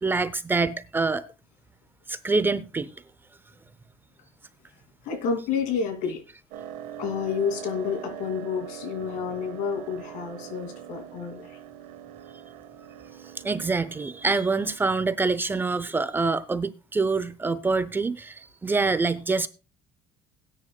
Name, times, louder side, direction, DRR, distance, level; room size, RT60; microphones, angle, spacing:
voice 1, 0.0-1.3 2.1-2.9 13.4-19.5, right 3 dB, 15° right, 0.6 m, -25 dB
voice 2, 5.0-6.2 7.0-11.6, left 6 dB, 75° left, 2.7 m, -29 dB
sound 1, 6.5-14.8, right 10 dB, 80° right, 1.4 m, -42 dB
18.5 x 9.7 x 2.3 m
cardioid pair, 140°, 13 cm